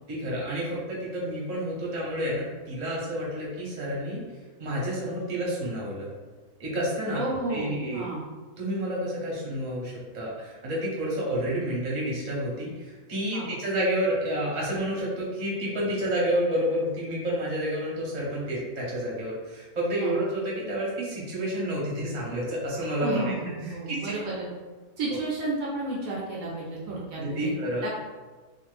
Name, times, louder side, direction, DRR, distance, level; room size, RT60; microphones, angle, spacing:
voice 1, 0.1-4.2 4.6-6.1 6.6-7.2 7.5-8.0 8.6-23.3 23.7-24.1 27.2-27.8, equal, 35° right, -6 dB, 0.8 m, -29 dB
voice 2, 7.1-8.2 13.3-13.5 20.0-20.2 23.0-24.5 25.0-27.5 27.8-27.9, right 2 dB, 70° right, -4 dB, 0.9 m, -32 dB
2.5 x 2.2 x 3.2 m, 1.3 s
omnidirectional pair, 1.6 m